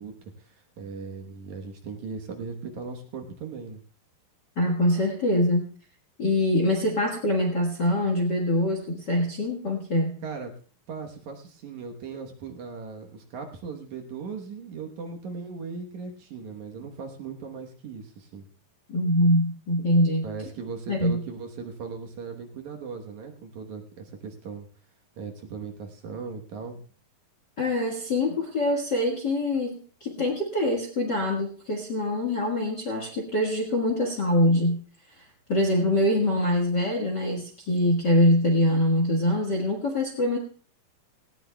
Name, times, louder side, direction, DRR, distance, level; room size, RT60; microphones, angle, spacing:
voice 1, 0.0-3.8 10.2-10.5 10.9-18.5 20.2-24.7 25.2-26.8, right 5 dB, 65° right, 3 dB, 2.3 m, -38 dB
voice 2, 4.6-5.7 6.2-10.2 18.9-20.2 20.9-21.2 27.6-34.8 35.2-35.3 35.5-40.4, left 1 dB, 45° left, 1 dB, 1.4 m, -24 dB
18.0 x 17.5 x 2.3 m, 0.42 s
omnidirectional pair, 4.1 m